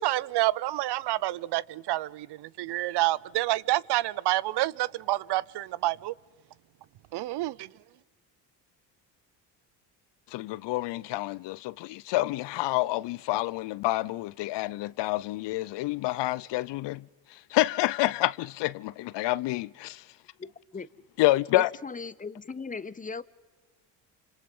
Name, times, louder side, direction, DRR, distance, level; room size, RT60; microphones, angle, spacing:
voice 1, 0.0-6.1 7.1-7.7, right 16 dB, 60° right, 0.6 m, -28 dB
voice 2, 10.3-17.1 17.5-20.0 21.2-21.7, left 18 dB, 60° left, 0.6 m, -28 dB
voice 3, 21.5-23.2, left 4 dB, 15° left, 0.9 m, -37 dB
28.5 x 26.5 x 5.4 m
supercardioid pair, 70°, 47 cm